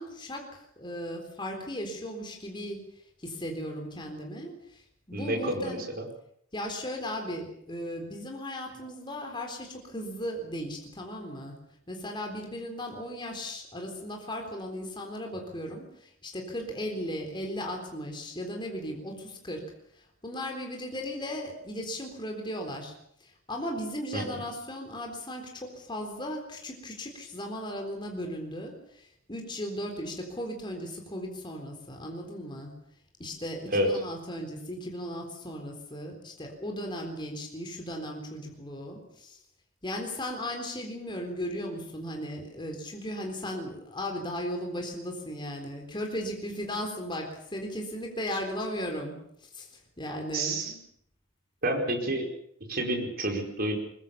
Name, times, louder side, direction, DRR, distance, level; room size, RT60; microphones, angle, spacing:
voice 1, 0.0-2.8 3.2-5.8 6.5-11.5 11.9-19.7 20.0-22.9 23.2-32.7 33.2-39.4 39.8-50.8, equal, 25° left, 2 dB, 3.9 m, -36 dB
voice 2, 5.1-6.0 24.1-24.2 33.7-33.9 50.3-50.7 51.6-52.3 52.7-53.8, right 1 dB, 50° right, 2 dB, 5.1 m, -29 dB
23.0 x 21.5 x 7.0 m, 0.70 s
head